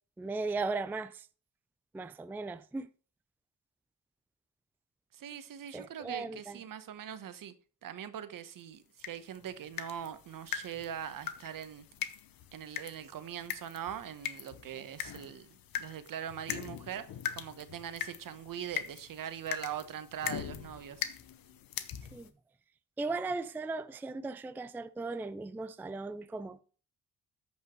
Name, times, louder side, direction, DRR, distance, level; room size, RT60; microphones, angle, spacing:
voice 1, 0.2-1.3 1.9-2.9 5.7-6.6 22.1-22.3 23.0-26.6, right 3 dB, 5° right, 0.3 m, -37 dB
voice 2, 5.1-7.5 7.8-11.9 12.5-17.1 17.3-21.0, right 9 dB, 65° right, 1.1 m, -42 dB
sound 1, 9.0-22.3, left 10 dB, 70° left, 1.0 m, -42 dB
14.0 x 5.4 x 3.1 m
cardioid pair, 90°, 36 cm